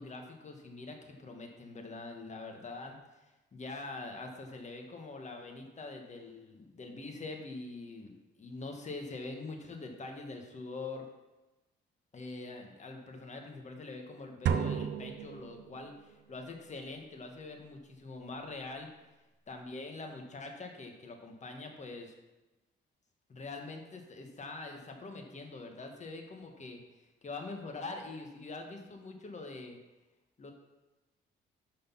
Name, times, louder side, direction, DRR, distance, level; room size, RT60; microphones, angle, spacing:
voice 1, 0.0-3.0 3.2-11.1 12.1-18.9 19.5-22.1 23.3-26.8 27.2-29.8 30.4-30.5, left 3 dB, 35° left, 3 dB, 1.6 m, -44 dB
sound 1, 14.5-16.1, right 7 dB, 65° right, 0.6 m, -33 dB
6.4 x 6.1 x 5.7 m, 1.1 s
cardioid pair, 90°, 20 cm